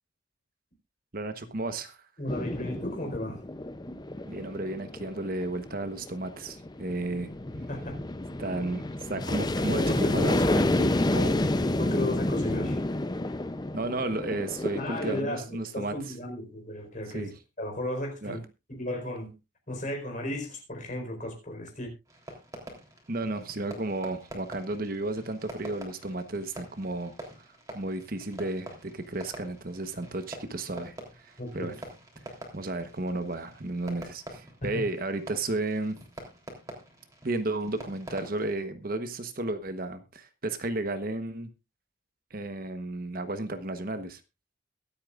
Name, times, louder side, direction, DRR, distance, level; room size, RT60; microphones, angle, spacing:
voice 1, 1.1-2.0 4.2-7.3 8.4-11.3 13.7-15.9 17.1-17.3 18.2-18.4 23.1-27.1 27.7-31.7 32.5-36.0 37.2-41.5 42.3-44.2, right 2 dB, 45° right, 1.1 m, -33 dB
voice 2, 2.2-3.4 3.8-4.0 7.7-8.0 9.7-10.4 11.8-12.8 14.8-18.4 18.7-19.3 19.7-21.9 31.4-31.7 34.6-34.8, left 1 dB, 40° left, 4.3 m, -35 dB
sound 1, 2.3-15.2, left 1 dB, 20° left, 0.5 m, -29 dB
Fireworks, 22.1-38.6, right 1 dB, 15° right, 3.3 m, -46 dB
23.0 x 8.6 x 2.5 m
head